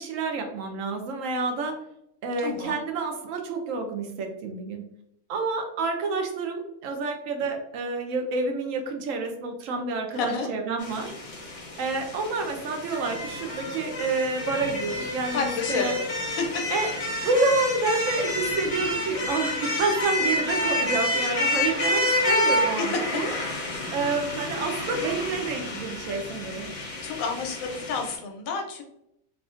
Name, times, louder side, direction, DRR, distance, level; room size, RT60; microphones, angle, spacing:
voice 1, 0.0-1.8 2.2-4.9 5.3-11.1 11.8-15.9 16.7-16.9 17.2-23.3 23.9-26.7, right 3 dB, 75° right, 4 dB, 0.9 m, -28 dB
voice 2, 2.4-2.8 10.2-10.5 15.3-16.0 16.4-16.5 22.8-23.0 27.0-28.8, left 5 dB, 85° left, 3 dB, 1.0 m, -29 dB
sound 1, 10.8-28.2, left 2 dB, 45° left, 0.5 m, -29 dB
3.4 x 2.5 x 2.4 m, 0.78 s
omnidirectional pair, 1.4 m